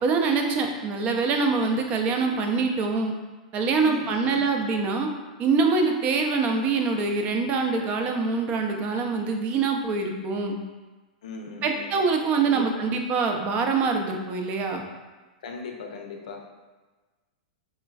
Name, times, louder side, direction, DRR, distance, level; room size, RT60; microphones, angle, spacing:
voice 1, 0.0-3.1 3.5-5.1 5.4-10.6 11.6-14.8, right 4 dB, 35° right, 3 dB, 0.4 m, -24 dB
voice 2, 3.8-4.7 11.2-11.9 12.5-12.9 15.4-16.4, left 4 dB, 70° left, 2 dB, 0.5 m, -39 dB
3.1 x 3.1 x 2.3 m, 1.3 s
hypercardioid pair, 105°, 4 cm